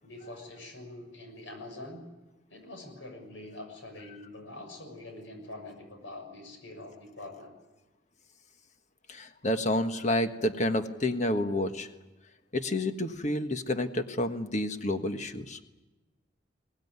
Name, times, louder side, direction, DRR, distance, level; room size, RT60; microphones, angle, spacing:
voice 1, 0.0-2.0 2.5-7.5, left 2 dB, 90° left, 5 dB, 6.6 m, -45 dB
voice 2, 9.1-11.9 12.5-15.6, left 1 dB, 40° left, 7 dB, 1.4 m, -29 dB
23.0 x 18.5 x 9.6 m, 1.1 s
head